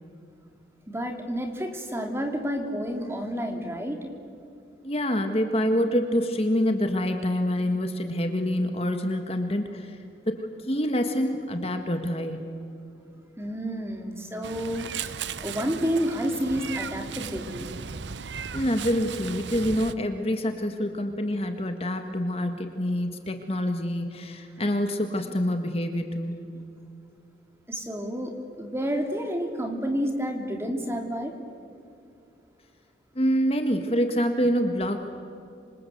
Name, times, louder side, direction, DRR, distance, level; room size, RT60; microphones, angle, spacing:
voice 1, 0.9-4.1 13.4-17.7 27.7-31.3, equal, 15° right, 4 dB, 3.0 m, -30 dB
voice 2, 4.8-10.0 10.3-12.4 18.5-26.5 33.1-35.0, equal, 35° left, 6 dB, 1.6 m, -26 dB
Meow, 14.4-19.9, right 6 dB, 80° right, 0.8 m, -36 dB
26.5 x 26.5 x 8.0 m, 2.6 s
head